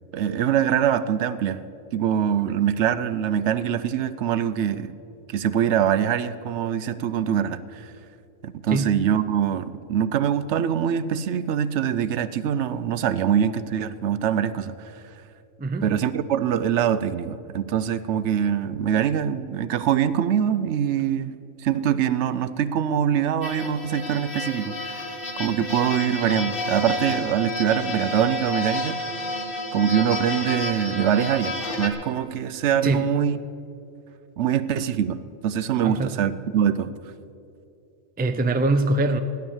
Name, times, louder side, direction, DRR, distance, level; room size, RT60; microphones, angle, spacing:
voice 1, 0.1-1.6 1.9-4.9 5.3-7.9 8.4-14.9 15.8-21.3 21.6-25.0 25.4-29.0 29.7-33.4 34.4-36.9, right 9 dB, 75° right, 0.9 m, -24 dB
voice 2, 15.6-15.9 32.8-33.1 35.8-36.2 38.2-39.2, right 2 dB, 15° right, 0.4 m, -23 dB
sound 1, 23.4-31.9, left 1 dB, 50° left, 1.5 m, -30 dB
15.0 x 10.5 x 7.2 m
omnidirectional pair, 1.2 m